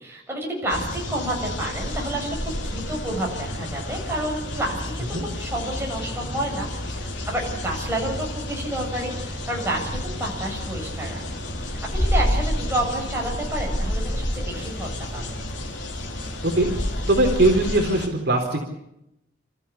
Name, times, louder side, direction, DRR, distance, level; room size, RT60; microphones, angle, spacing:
voice 1, 0.0-5.1 5.3-11.2 11.9-15.2, right 1 dB, 15° right, -1 dB, 7.0 m, -29 dB
sound 1, 0.7-18.1, left 1 dB, 75° left, 3.4 m, -33 dB
sound 2, 0.7-17.8, equal, 45° left, 4.4 m, -32 dB
voice 2, 17.1-18.7, right 2 dB, 60° right, 3 dB, 3.8 m, -20 dB
30.0 x 14.0 x 8.4 m, 0.82 s
head